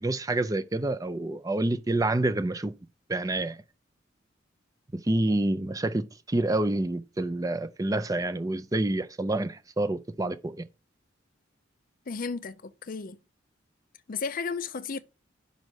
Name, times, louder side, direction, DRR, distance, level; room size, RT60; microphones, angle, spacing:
voice 1, 0.0-2.7 3.1-3.6 4.9-10.6, right 2 dB, 20° right, 0.5 m, -28 dB
voice 2, 12.1-13.2 14.1-15.0, left 5 dB, 45° left, 0.5 m, -33 dB
5.3 x 5.2 x 6.2 m
head